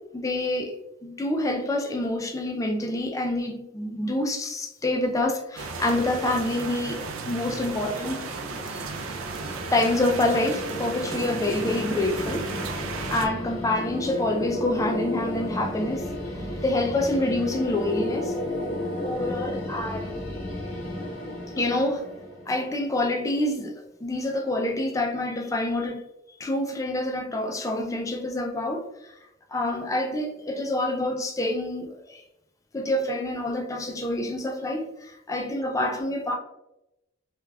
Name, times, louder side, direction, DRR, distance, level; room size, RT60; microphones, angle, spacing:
voice 1, 0.1-8.3 8.6-9.2 9.4-12.5 12.7-18.4 19.0-20.2 21.6-22.1 22.5-26.0 26.4-28.9 29.5-32.2 32.7-36.4, left 1 dB, 15° left, 0.3 m, -27 dB
sound 1, 5.6-13.3, right 4 dB, 85° right, 0.4 m, -34 dB
sound 2, 8.2-23.2, left 1 dB, 80° left, 0.9 m, -34 dB
3.2 x 2.3 x 2.2 m
head